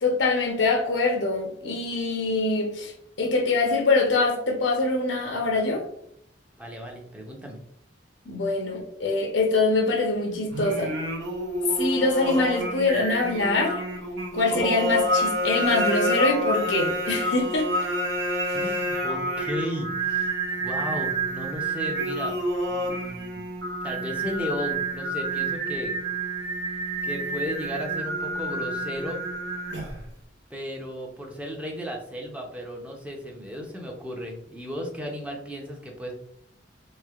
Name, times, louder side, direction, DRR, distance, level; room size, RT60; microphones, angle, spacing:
voice 1, 0.0-2.9 3.2-5.8 8.3-10.9 11.8-13.8 14.3-17.7, left 3 dB, 90° left, 0.7 m, -24 dB
voice 2, 6.6-7.6 18.5-20.3 20.6-22.4 22.7-23.4 23.8-26.0 27.0-29.2 30.5-36.1, equal, 10° right, 0.6 m, -35 dB
Singing, 10.5-30.1, right 1 dB, 85° right, 0.7 m, -28 dB
3.2 x 3.1 x 2.3 m
head